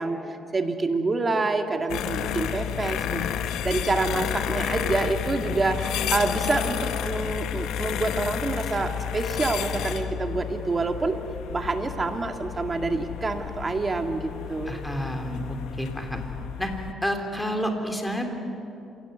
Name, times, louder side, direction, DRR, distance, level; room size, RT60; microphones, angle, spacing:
voice 1, 0.0-3.3 3.6-11.2 11.5-14.8, right 3 dB, 30° right, 5 dB, 2.2 m, -27 dB
sound 1, 1.9-16.9, left 9 dB, 85° left, 1.1 m, -31 dB
voice 2, 14.7-15.4 15.8-16.2 16.6-16.7 17.0-18.3, equal, 5° left, 4 dB, 3.5 m, -29 dB
27.5 x 17.5 x 9.5 m, 2.8 s
cardioid pair, 90°, 0 cm